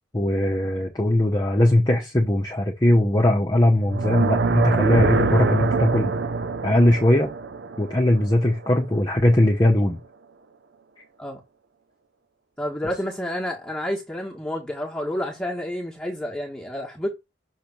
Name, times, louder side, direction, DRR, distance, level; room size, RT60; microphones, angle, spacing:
voice 1, 0.1-6.1 6.6-7.3 7.8-10.0, left 1 dB, 20° left, 0.9 m, -20 dB
sound 1, 3.8-9.0, right 4 dB, 70° right, 0.5 m, -24 dB
voice 2, 12.6-17.1, left 1 dB, 5° left, 1.4 m, -29 dB
6.5 x 3.4 x 5.9 m
head